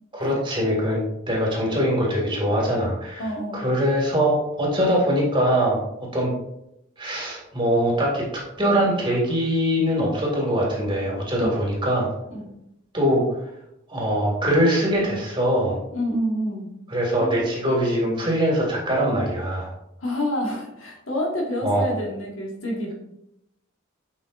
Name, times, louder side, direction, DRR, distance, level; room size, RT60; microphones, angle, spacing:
voice 1, 0.1-3.3 3.5-5.9 6.1-6.3 7.0-12.1 12.9-13.2 13.9-15.8 16.9-19.7 21.6-21.9, equal, 25° right, -3 dB, 2.0 m, -22 dB
voice 2, 3.2-3.6 11.4-11.6 12.3-12.4 15.9-16.7 17.1-17.5 20.0-22.9, equal, 75° left, -1 dB, 1.7 m, -28 dB
7.4 x 5.3 x 2.5 m, 0.82 s
head